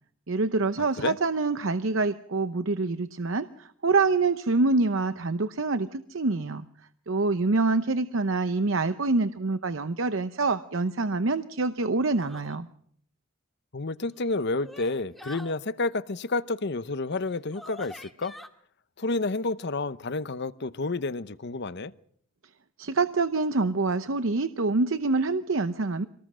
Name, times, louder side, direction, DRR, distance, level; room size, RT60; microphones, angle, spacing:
voice 1, 0.3-6.6 7.1-12.7 22.8-26.1, right 3 dB, 65° right, 0.8 m, -26 dB
sound 1, 12.2-12.6 14.0-15.5 17.1-17.2 17.5-18.5, equal, ahead, 1.8 m, -46 dB
voice 2, 13.7-18.3 19.0-21.9, left 3 dB, 55° left, 0.8 m, -30 dB
25.5 x 19.0 x 6.3 m
head